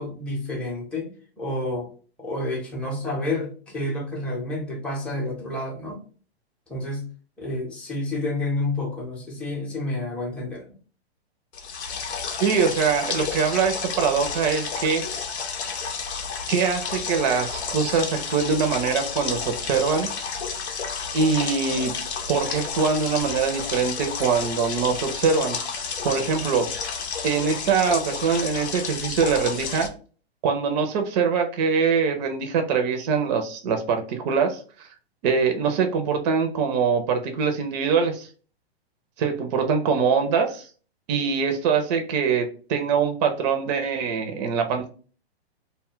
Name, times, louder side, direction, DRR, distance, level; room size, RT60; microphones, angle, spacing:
voice 1, 0.0-1.9 2.2-6.0 6.7-7.1 7.4-10.7, left 2 dB, 5° left, -4 dB, 0.7 m, -29 dB
sound 1, 11.5-29.9, left 5 dB, 80° left, 0.7 m, -31 dB
voice 2, 12.4-15.0 16.5-20.1 21.1-21.9 22.3-26.7 27.2-29.9 30.4-34.9 35.2-38.3 39.2-40.7 41.1-44.9, right 5 dB, 40° right, 5 dB, 0.5 m, -23 dB
2.2 x 2.1 x 3.5 m, 0.39 s
hypercardioid pair, 125°, 32 cm